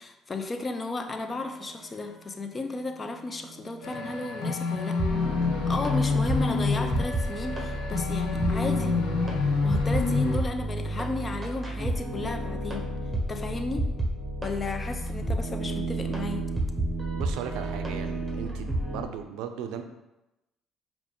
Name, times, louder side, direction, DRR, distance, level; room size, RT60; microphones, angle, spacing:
voice 1, 0.0-5.0 5.7-9.0 9.6-12.9 13.3-13.9 14.4-16.5, left 2 dB, 30° left, 6 dB, 0.5 m, -34 dB
sound 1, 3.5-4.1 5.0-19.0, right 1 dB, 20° right, 1.2 m, -31 dB
sound 2, 3.8-10.4, left 4 dB, 70° left, 0.8 m, -28 dB
voice 2, 17.1-19.8, right 8 dB, 75° right, 7 dB, 0.4 m, -37 dB
4.6 x 2.5 x 3.8 m, 0.95 s
hypercardioid pair, 65°, 0 cm